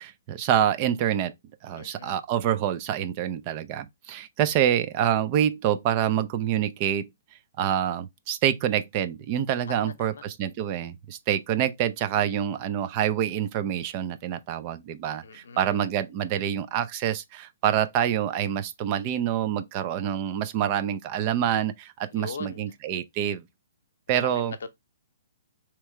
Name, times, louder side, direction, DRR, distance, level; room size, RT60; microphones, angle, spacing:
voice 1, 0.0-1.3 1.6-23.4 24.1-24.5, right 10 dB, 35° right, 0.6 m, -26 dB
voice 2, 1.8-2.2 9.7-10.2 15.2-15.8 22.1-22.6 24.2-24.7, left 5 dB, 75° left, 0.8 m, -40 dB
3.6 x 3.0 x 4.4 m
hypercardioid pair, 135°, 0 cm